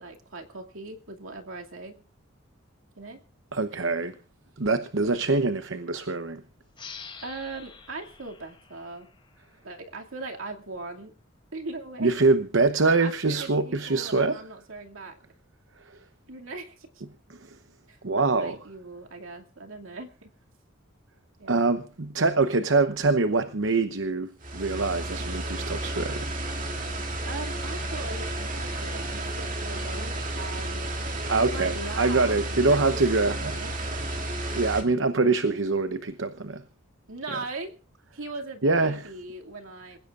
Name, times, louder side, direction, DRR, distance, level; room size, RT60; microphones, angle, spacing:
voice 1, 0.0-2.0 3.0-3.2 5.0-5.2 7.2-9.1 9.6-11.1 11.5-12.1 12.8-15.2 16.3-16.9 17.9-20.3 21.4-21.7 27.3-30.9 31.3-33.0 33.3-33.8 37.1-37.7 38.1-40.0, right 3 dB, 85° right, 2.5 m, -39 dB
voice 2, 3.5-4.1 4.6-6.4 12.0-14.4 17.3-17.6 18.0-18.6 21.5-26.3 31.3-33.5 34.5-36.6 38.6-39.1, right 3 dB, 70° right, 0.9 m, -24 dB
sound 1, 6.7-10.0, left 5 dB, 25° left, 5.4 m, -47 dB
sound 2, 24.4-34.8, right 1 dB, 40° right, 2.5 m, -32 dB
27.0 x 16.0 x 2.5 m
head